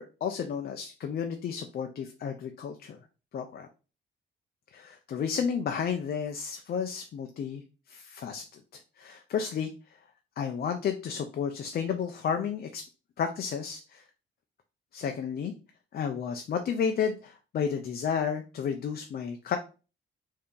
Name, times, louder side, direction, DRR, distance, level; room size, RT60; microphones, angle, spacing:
voice 1, 0.0-3.0 3.3-3.7 4.7-7.6 7.9-8.6 9.0-9.7 10.4-12.8 13.2-14.0 14.9-15.5 15.9-19.6, left 7 dB, 50° left, 6 dB, 0.5 m, -32 dB
3.3 x 2.8 x 3.8 m, 0.34 s
cardioid pair, 90°, 20 cm